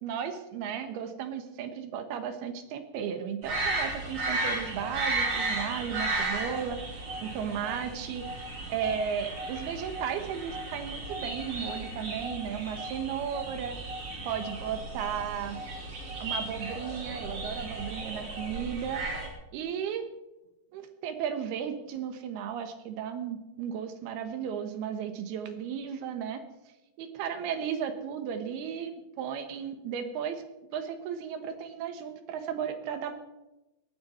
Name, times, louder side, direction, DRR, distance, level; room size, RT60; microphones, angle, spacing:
voice 1, 0.0-6.8 7.2-8.3 8.7-13.8 14.3-15.6 16.2-19.0 19.5-20.0 20.7-26.4 27.0-30.4 30.7-33.1, right 8 dB, 85° right, 8 dB, 3.3 m, -34 dB
sound 1, 3.4-19.3, right 2 dB, 40° right, 3.3 m, -35 dB
18.5 x 13.0 x 4.4 m, 0.96 s
omnidirectional pair, 4.4 m